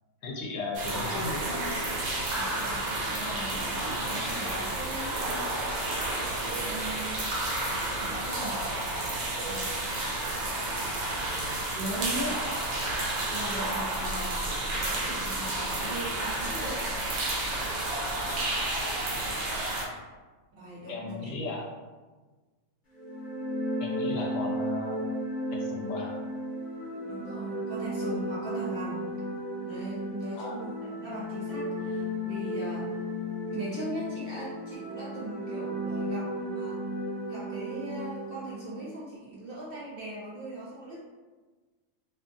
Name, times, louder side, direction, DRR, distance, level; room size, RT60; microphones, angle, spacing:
voice 1, 0.2-1.5 20.9-21.6 23.8-25.0 25.6-26.2 30.3-30.6, left 3 dB, 75° left, -2 dB, 0.9 m, -35 dB
sound 1, 0.7-19.8, right 2 dB, 85° right, 1.1 m, -31 dB
voice 2, 2.3-5.2 6.0-7.2 8.0-8.7 9.5-9.7 11.7-12.4 13.3-14.5 14.7-16.8 20.6-21.3 27.1-29.0 29.6-33.1 33.5-36.8 37.3-41.0, right 1 dB, 50° right, -7 dB, 0.8 m, -39 dB
sound 2, 22.9-38.6, equal, 45° left, 0.8 m, -34 dB
2.6 x 2.4 x 2.5 m, 1.3 s
omnidirectional pair, 1.4 m